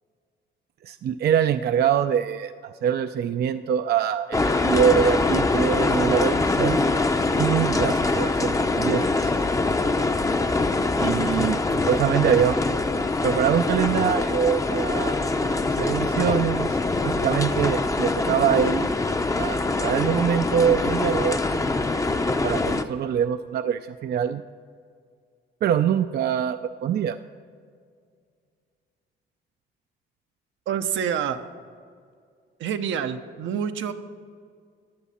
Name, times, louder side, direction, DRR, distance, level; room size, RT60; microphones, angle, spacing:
voice 1, 0.8-6.8 7.4-9.3 11.0-12.6 13.2-15.2 15.8-18.9 19.4-21.4 22.4-24.4 25.6-27.2, right 8 dB, 55° right, 9 dB, 0.4 m, -24 dB
sound 1, 4.3-22.8, left 3 dB, 15° left, 0.6 m, -24 dB
voice 2, 30.7-31.4 32.6-33.9, right 8 dB, 75° right, 8 dB, 0.8 m, -27 dB
15.5 x 10.0 x 4.2 m, 2.1 s
cardioid pair, 90°, 20 cm